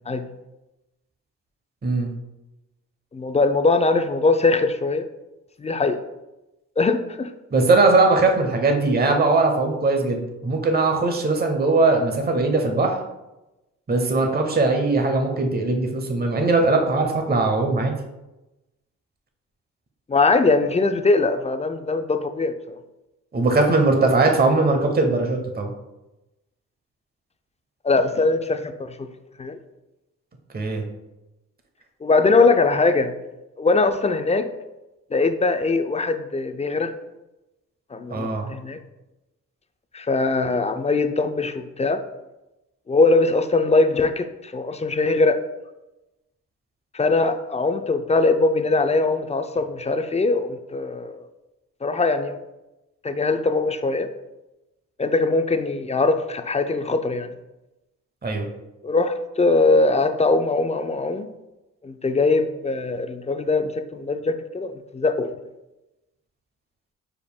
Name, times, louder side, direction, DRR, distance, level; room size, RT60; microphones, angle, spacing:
voice 1, 3.1-5.1 5.6-6.0 6.8-7.3 20.1-22.8 27.8-29.1 29.4-29.6 32.0-33.1 33.6-34.5 35.1-36.9 37.9-38.8 39.9-42.0 42.9-45.4 46.9-51.3 51.8-52.4 53.0-54.1 55.0-57.3 58.8-61.3 61.8-65.3, left 3 dB, 20° left, 9 dB, 0.4 m, -21 dB
voice 2, 7.5-13.0 13.9-17.9 23.3-25.7 30.5-30.8 38.1-38.5 58.2-58.5, right 3 dB, 30° right, 3 dB, 0.9 m, -20 dB
5.1 x 4.5 x 2.3 m, 0.98 s
supercardioid pair, 55°, 34 cm